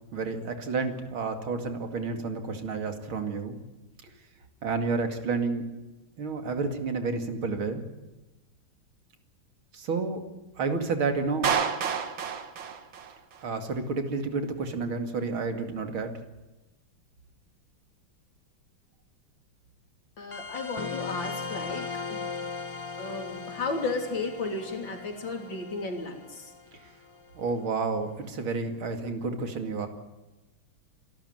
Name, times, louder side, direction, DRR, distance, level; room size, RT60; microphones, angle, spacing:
voice 1, 0.1-3.6 4.0-4.1 4.6-5.6 6.2-7.8 9.7-10.2 10.6-11.5 13.4-16.1 27.4-29.9, right 4 dB, 85° right, 6 dB, 3.2 m, -30 dB
Clapping, 11.4-13.5, right 7 dB, 70° right, 2.2 m, -29 dB
voice 2, 20.2-22.3 23.0-26.5, left 3 dB, 65° left, 4 dB, 3.8 m, -34 dB
sound 1, 20.3-27.4, left 4 dB, 35° left, 0.5 m, -38 dB
27.0 x 12.5 x 9.3 m, 1.1 s
omnidirectional pair, 2.2 m